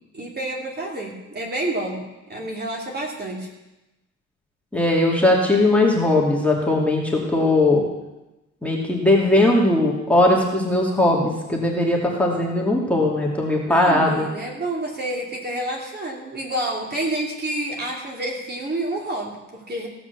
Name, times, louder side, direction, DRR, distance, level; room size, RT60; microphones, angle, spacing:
voice 1, 0.1-2.0 2.3-3.5 13.7-19.9, right 1 dB, 35° right, -1 dB, 2.9 m, -29 dB
voice 2, 4.7-7.8 8.6-14.3, left 2 dB, 5° left, -3 dB, 2.5 m, -19 dB
16.5 x 6.0 x 6.9 m, 1.0 s
cardioid pair, 90°, 30 cm